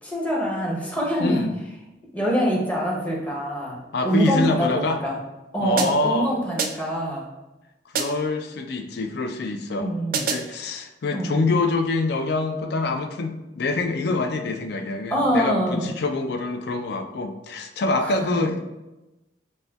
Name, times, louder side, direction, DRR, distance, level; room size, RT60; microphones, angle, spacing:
voice 1, 0.0-1.4 2.1-5.1 5.5-7.2 9.8-10.2 11.1-11.4 15.1-15.9 18.0-18.4, equal, 10° left, -4 dB, 0.8 m, -25 dB
voice 2, 1.2-1.5 3.9-5.0 5.6-6.3 7.9-18.6, left 2 dB, 60° left, 6 dB, 0.4 m, -25 dB
sound 1, 5.8-6.2 6.6-7.0 7.9-8.4 10.1-10.6, right 5 dB, 50° right, 0.4 m, -28 dB
5.2 x 2.2 x 2.3 m, 1.0 s
head